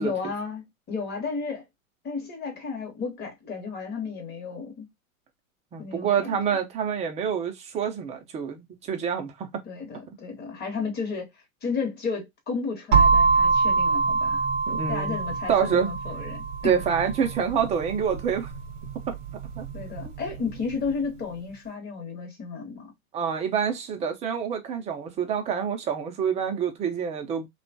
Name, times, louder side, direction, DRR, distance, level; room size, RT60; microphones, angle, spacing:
voice 1, 0.0-1.7 2.0-4.9 5.8-6.3 9.6-11.3 11.6-14.4 14.9-16.7 19.7-22.9, left 5 dB, 25° left, 1.0 m, -33 dB
voice 2, 5.7-9.6 10.1-10.2 14.7-15.2 15.5-15.9 16.6-18.5 19.1-19.2 19.6-19.7 23.1-27.5, right 7 dB, 15° right, 0.5 m, -27 dB
sound 1, 12.9-20.7, right 4 dB, 60° right, 0.9 m, -25 dB
2.8 x 2.3 x 2.6 m
hypercardioid pair, 115°, 43 cm